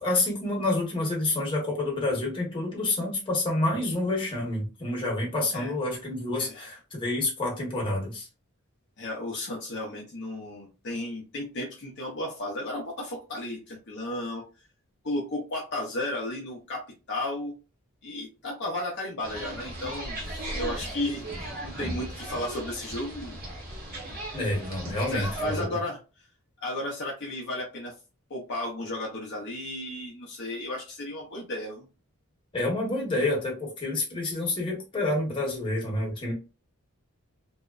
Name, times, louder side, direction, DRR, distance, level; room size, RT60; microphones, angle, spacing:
voice 1, 0.0-8.3 24.3-25.8 32.5-36.3, left 2 dB, 25° left, -2 dB, 1.0 m, -28 dB
voice 2, 9.0-14.4 15.0-17.6 18.0-23.4 25.1-26.0 26.6-27.9 28.3-31.9, left 1 dB, 50° left, -1 dB, 0.6 m, -34 dB
sound 1, 19.2-25.6, right 1 dB, 40° right, 0.9 m, -36 dB
2.7 x 2.0 x 2.3 m, 0.31 s
head